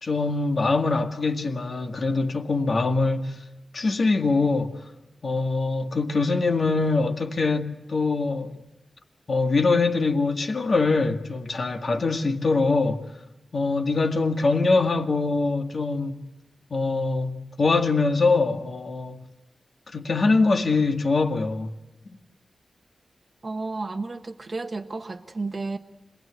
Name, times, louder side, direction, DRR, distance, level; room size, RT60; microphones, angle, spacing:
voice 1, 0.0-3.4 3.7-4.7 5.2-8.5 9.3-13.0 13.5-16.2 16.7-19.2 19.9-21.8, left 3 dB, 55° left, 1.9 m, -23 dB
voice 2, 23.4-25.8, right 3 dB, 45° right, 1.1 m, -32 dB
26.5 x 20.0 x 8.3 m
wide cardioid pair, 75°, 0 cm